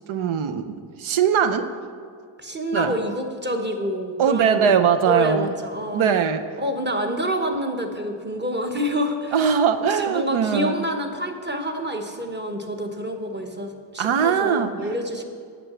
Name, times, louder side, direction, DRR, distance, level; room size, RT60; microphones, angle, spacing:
voice 1, 0.1-1.7 2.7-2.9 4.2-5.5 5.9-6.4 9.3-10.8 14.0-14.9, right 7 dB, 75° right, 8 dB, 0.7 m, -21 dB
voice 2, 2.4-4.7 5.1-6.1 6.6-9.4 9.8-15.2, equal, 20° right, 4 dB, 1.0 m, -27 dB
8.4 x 6.1 x 6.0 m, 2.2 s
cardioid pair, 70°, 49 cm